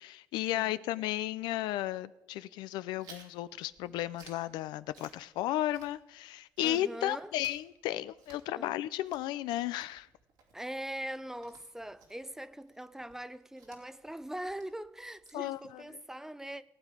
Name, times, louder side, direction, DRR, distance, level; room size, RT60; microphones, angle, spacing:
voice 1, 0.0-10.1 15.3-15.8, left 14 dB, 90° left, 0.4 m, -34 dB
Chewing mastication, 3.0-6.3 6.6-16.0, right 5 dB, 90° right, 2.9 m, -59 dB
voice 2, 6.6-7.4 8.5-8.7 10.5-16.6, right 1 dB, 5° right, 0.5 m, -42 dB
18.0 x 8.5 x 5.0 m
cardioid pair, 100°, 7 cm